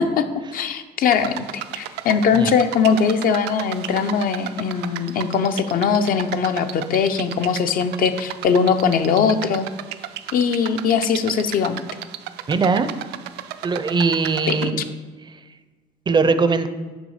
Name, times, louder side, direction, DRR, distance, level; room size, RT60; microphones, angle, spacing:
voice 1, 0.5-9.7 10.3-11.8 14.5-14.7, left 6 dB, 60° left, 9 dB, 0.6 m, -20 dB
sound 1, 1.1-14.7, right 12 dB, 80° right, 0.4 m, -34 dB
voice 2, 12.5-12.9 13.6-14.8 16.1-16.7, right 4 dB, 25° right, 10 dB, 0.5 m, -20 dB
6.1 x 4.9 x 5.5 m, 1.4 s
cardioid pair, 110°, 17 cm